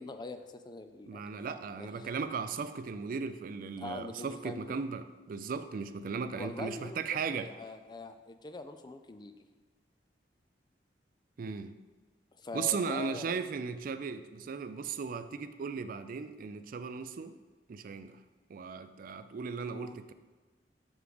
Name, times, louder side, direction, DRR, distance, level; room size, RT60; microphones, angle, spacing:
voice 1, 0.0-1.2 1.8-2.1 3.8-4.8 6.3-7.0 7.2-9.3 12.3-13.4 19.7-20.0, left 3 dB, 25° left, 8 dB, 0.4 m, -43 dB
voice 2, 1.1-7.5 11.4-11.7 12.5-17.3 17.7-18.2 18.5-20.1, right 5 dB, 50° right, 11 dB, 0.3 m, -37 dB
6.2 x 5.0 x 5.0 m, 1.3 s
head